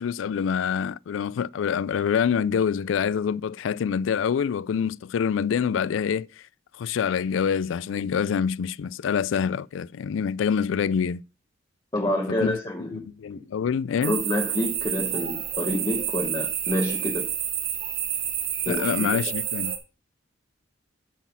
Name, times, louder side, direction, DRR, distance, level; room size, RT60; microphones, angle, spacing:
voice 1, 0.0-6.3 6.8-11.2 12.3-12.6 13.2-14.2 18.7-19.7, left 7 dB, 80° left, 0.3 m, -26 dB
voice 2, 11.9-13.0 14.0-17.3 18.7-19.2, left 1 dB, 25° left, 1.0 m, -28 dB
sound 1, 14.0-19.8, right 10 dB, 70° right, 2.0 m, -29 dB
8.2 x 6.2 x 5.6 m
head